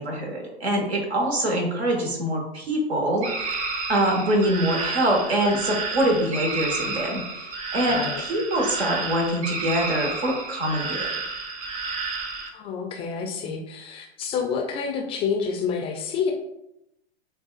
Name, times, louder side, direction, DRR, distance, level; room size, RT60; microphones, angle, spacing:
voice 1, 0.0-3.5 3.9-11.1, right 1 dB, 85° right, 1 dB, 1.2 m, -24 dB
voice 2, 1.8-2.2 7.9-8.2 12.5-16.3, left 6 dB, 20° left, 2 dB, 0.3 m, -29 dB
sound 1, 3.2-12.5, right 4 dB, 25° right, 0.6 m, -31 dB
6.4 x 2.3 x 2.3 m, 0.83 s
hypercardioid pair, 105°, 31 cm